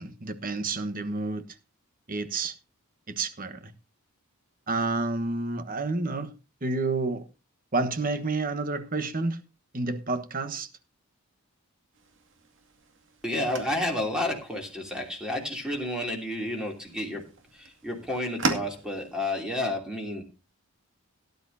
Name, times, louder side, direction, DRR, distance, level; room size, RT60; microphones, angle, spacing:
voice 1, 0.0-1.4 2.1-2.6 3.1-3.7 4.7-6.3 6.6-7.2 7.7-9.4 9.7-10.7, right 3 dB, 40° right, 1.2 m, -29 dB
sound 1, 11.9-19.2, right 3 dB, 55° right, 2.3 m, -38 dB
voice 2, 13.2-17.2 17.5-20.3, left 1 dB, 5° right, 2.9 m, -31 dB
17.5 x 10.5 x 2.7 m
head